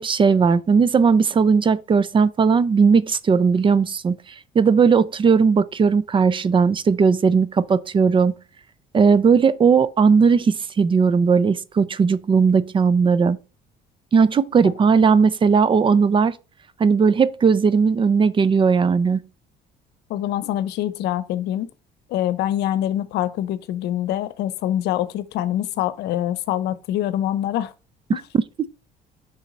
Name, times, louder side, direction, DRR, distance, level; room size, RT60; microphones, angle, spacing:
voice 1, 0.0-4.2 4.5-8.3 8.9-13.4 14.1-16.4 16.8-19.2 28.6-28.7, right 5 dB, 30° right, 0.5 m, -17 dB
voice 2, 20.1-21.7 22.1-27.7 28.1-28.2, left 12 dB, 80° left, 0.7 m, -25 dB
7.0 x 5.5 x 4.0 m
cardioid pair, 110°, 17 cm